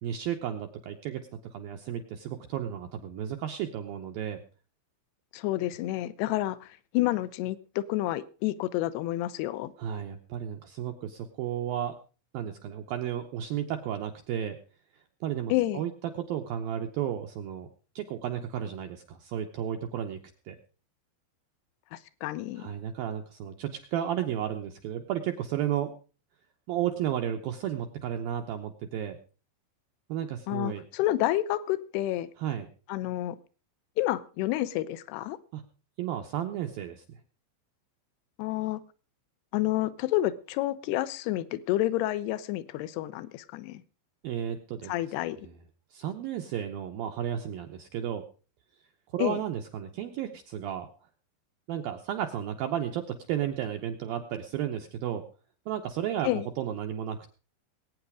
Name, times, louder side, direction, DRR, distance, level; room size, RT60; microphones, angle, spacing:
voice 1, 0.0-4.4 9.8-11.9 12.3-14.6 15.2-17.7 18.0-20.2 20.5-20.6 22.6-25.9 26.7-29.2 30.1-30.8 32.4-32.7 35.5-35.6 36.0-37.0 44.2-44.9 45.9-48.2 49.1-50.9 51.7-55.2 55.7-57.3, right 10 dB, 80° right, 5 dB, 2.1 m, -33 dB
voice 2, 5.3-6.7 6.9-9.7 15.5-15.8 21.9-22.7 30.5-32.3 32.9-33.4 34.0-35.4 38.4-38.8 39.5-43.8 44.9-45.4 49.2-49.4 56.2-56.5, left 15 dB, 75° left, 16 dB, 2.5 m, -29 dB
20.5 x 9.2 x 4.8 m, 0.37 s
omnidirectional pair, 5.3 m